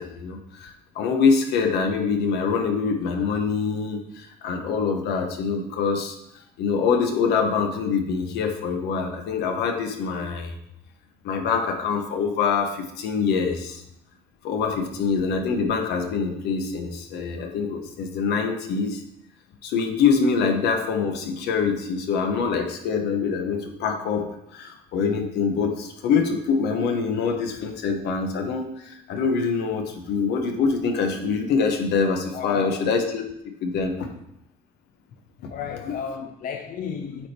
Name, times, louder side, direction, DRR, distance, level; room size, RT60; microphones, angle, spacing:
voice 1, 0.0-6.2 6.6-10.6 11.2-13.8 14.4-19.0 19.6-33.2 33.6-34.1 35.8-35.9, left 5 dB, 80° left, 1.1 m, -24 dB
voice 2, 32.3-32.9 35.5-37.3, left 7 dB, 55° left, 0.5 m, -33 dB
8.7 x 3.4 x 4.4 m
cardioid pair, 110°, 17 cm